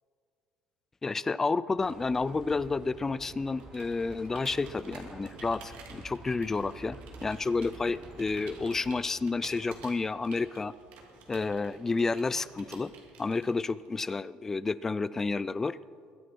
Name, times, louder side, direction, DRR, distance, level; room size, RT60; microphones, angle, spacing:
voice 1, 1.0-10.7 11.3-12.9 13.2-15.8, left 3 dB, 15° left, 18 dB, 0.3 m, -30 dB
Livestock farm animals working animals, 1.8-9.1, right 2 dB, 25° right, 2.6 m, -49 dB
Computer keyboard, 3.6-13.9, right 5 dB, 75° right, 2.7 m, -52 dB
22.0 x 10.0 x 4.5 m, 2.2 s
cardioid pair, 145°, 3 cm